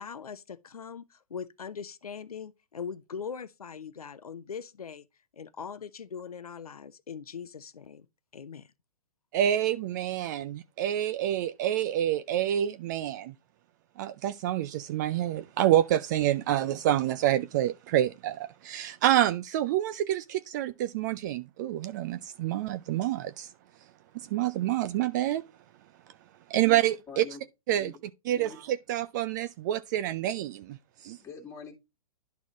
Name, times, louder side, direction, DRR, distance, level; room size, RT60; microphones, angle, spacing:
voice 1, 0.0-5.1 5.3-8.1 8.3-8.7, left 6 dB, 80° left, 0.6 m, -41 dB
voice 2, 9.3-13.3 14.0-23.5 24.1-25.4 26.5-27.2 27.7-27.9 28.2-31.2, right 12 dB, 30° right, 0.3 m, -27 dB
voice 3, 27.1-27.4 27.8-27.9 28.3-28.6 31.1-31.7, left 5 dB, 15° left, 2.1 m, -44 dB
11.5 x 4.1 x 3.0 m
figure-of-eight pair, 120°, 19 cm